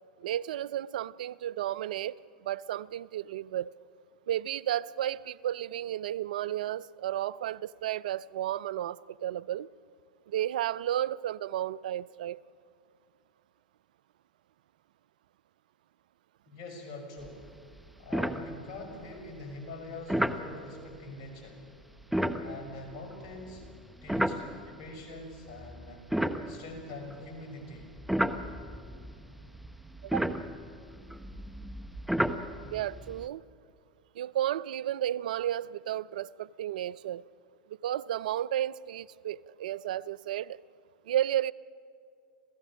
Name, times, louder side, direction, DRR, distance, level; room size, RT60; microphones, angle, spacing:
voice 1, 0.2-2.2 2.4-3.7 4.3-9.7 10.3-12.4 30.0-30.3 32.7-33.4 34.1-37.2 37.8-40.6 41.1-41.5, right 12 dB, 75° right, 0.4 m, -32 dB
voice 2, 16.5-17.4 18.0-21.7 22.4-23.7 24.0-24.5 24.8-26.1 26.5-27.9, left 2 dB, 55° left, 5.6 m, -44 dB
sound 1, 17.2-17.5 17.8-17.9 18.1-19.0 20.1-20.5 22.0-24.9 25.5-27.3 27.8-33.3, equal, ahead, 1.0 m, -32 dB
27.5 x 16.0 x 6.2 m
hypercardioid pair, 95°, 4 cm